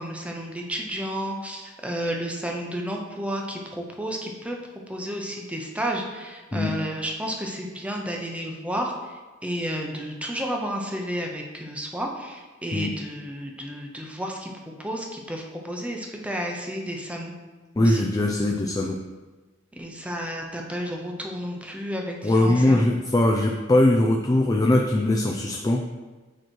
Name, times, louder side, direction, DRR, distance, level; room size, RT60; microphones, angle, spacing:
voice 1, 0.0-4.6 4.9-14.5 14.8-17.3 17.8-18.1 19.7-22.9, equal, 5° right, 1 dB, 0.7 m, -31 dB
voice 2, 17.8-19.0 22.2-25.8, left 1 dB, 20° left, 1 dB, 0.4 m, -21 dB
9.0 x 3.1 x 4.5 m, 1.3 s
head